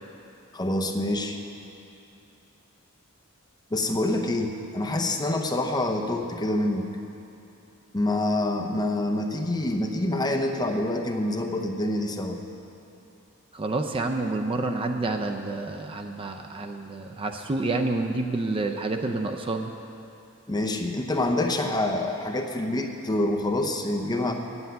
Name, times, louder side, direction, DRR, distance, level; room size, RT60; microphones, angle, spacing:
voice 1, 0.5-1.4 3.7-6.9 7.9-12.4 20.5-24.3, left 1 dB, 20° left, 3 dB, 0.7 m, -26 dB
voice 2, 13.5-19.7, right 2 dB, 25° right, 4 dB, 0.5 m, -28 dB
8.8 x 8.0 x 9.2 m, 2.9 s
head